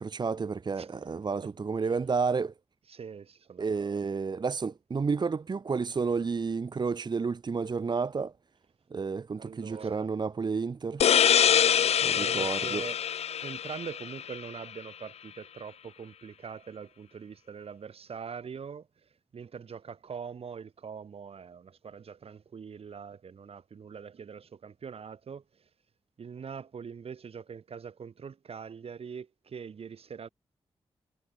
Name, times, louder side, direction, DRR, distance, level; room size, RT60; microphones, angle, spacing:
voice 1, 0.0-2.5 3.6-8.3 8.9-11.0 12.0-12.8, right 5 dB, 45° right, 0.8 m, -31 dB
voice 2, 0.8-1.5 2.9-4.0 9.4-10.1 12.1-13.0 13.4-25.7 26.2-30.3, right 6 dB, 70° right, 3.2 m, -43 dB
sound 1, 11.0-14.4, left 9 dB, 80° left, 0.8 m, -24 dB
cardioid pair, 65°, 11 cm